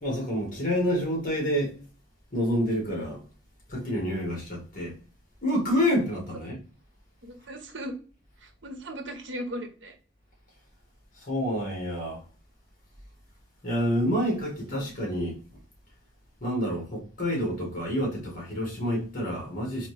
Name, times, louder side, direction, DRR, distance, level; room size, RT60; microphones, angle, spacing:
voice 1, 0.0-1.7 2.3-3.2 3.7-5.0 5.4-6.6 11.2-12.2 13.6-15.4 16.4-19.9, equal, 45° left, 1.8 m, -28 dB
voice 2, 7.2-7.9 8.4-9.9 14.7-14.9 16.7-16.8, equal, 80° right, 0.8 m, -38 dB
4.1 x 2.8 x 3.2 m
head